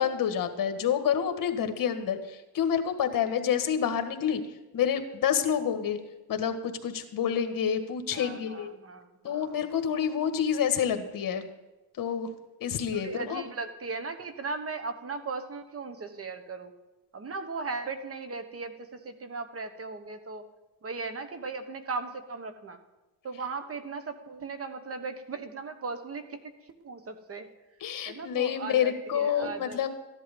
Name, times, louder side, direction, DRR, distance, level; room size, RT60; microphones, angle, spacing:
voice 1, 0.0-4.4 4.7-6.0 6.3-8.7 9.2-11.4 12.0-12.3 12.6-13.4 27.8-29.9, left 8 dB, 60° left, 7 dB, 1.7 m, -28 dB
voice 2, 8.1-9.7 12.9-16.7 17.1-20.4 20.8-22.8 23.2-26.4 26.8-27.5 28.1-29.9, right 4 dB, 35° right, 9 dB, 1.3 m, -37 dB
14.5 x 11.0 x 5.3 m, 1.1 s
cardioid pair, 110°, 39 cm